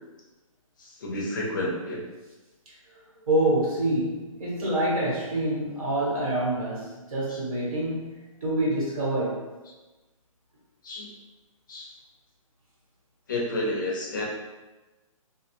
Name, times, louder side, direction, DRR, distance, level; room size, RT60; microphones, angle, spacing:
voice 1, 0.8-2.0 7.3-7.4 10.8-11.1 11.7-11.9 13.3-14.2, left 1 dB, 35° left, -3 dB, 0.5 m, -30 dB
voice 2, 3.3-9.4, right 1 dB, 80° right, -6 dB, 1.4 m, -26 dB
2.3 x 2.0 x 2.8 m, 1.1 s
hypercardioid pair, 175°, 18 cm